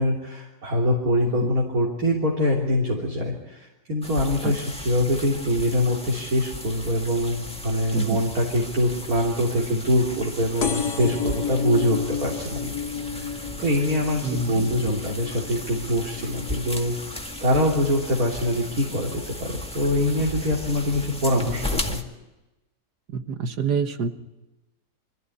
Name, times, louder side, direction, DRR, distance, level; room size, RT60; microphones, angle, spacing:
voice 1, 0.0-12.8 13.1-17.2 17.4-22.0, left 1 dB, 65° right, -3 dB, 3.9 m, -24 dB
sound 1, 4.0-22.0, left 1 dB, 5° left, 1.8 m, -36 dB
voice 2, 7.9-8.3 14.2-14.8 21.3-21.7 23.1-24.1, right 4 dB, 85° right, 8 dB, 2.0 m, -27 dB
sound 2, 10.6-17.8 18.3-18.8 19.7-19.8 20.0-20.1 20.3-20.4, left 6 dB, 75° left, 2.0 m, -32 dB
25.5 x 15.0 x 10.0 m, 1.0 s
omnidirectional pair, 1.7 m